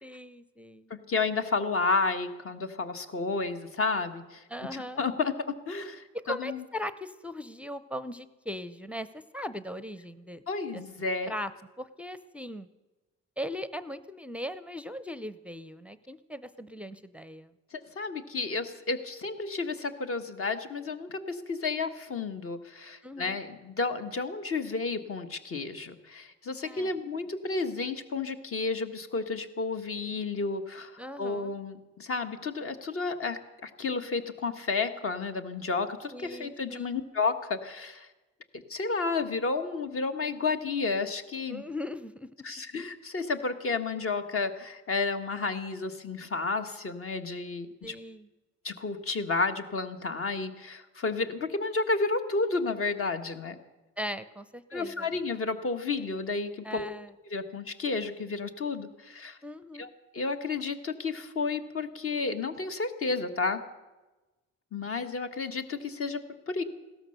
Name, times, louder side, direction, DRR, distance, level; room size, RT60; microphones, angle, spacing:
voice 1, 0.0-0.9 4.5-5.0 6.1-10.4 10.7-10.8 11.3-11.5 11.8-12.7 13.4-17.5 23.0-23.4 26.6-27.0 31.0-31.5 36.1-37.0 41.5-42.3 47.8-48.3 54.0-55.1 56.6-57.1 59.4-59.9, left 1 dB, 5° right, 14 dB, 0.6 m, -39 dB
voice 2, 0.9-4.4 4.7-6.6 10.5-11.3 17.7-38.1 38.5-41.6 42.4-47.9 48.6-53.6 54.7-56.9 57.3-59.4 59.8-63.6 64.7-66.6, left 4 dB, 45° left, 8 dB, 1.6 m, -31 dB
16.5 x 13.0 x 6.7 m, 1.1 s
cardioid pair, 90°, 30 cm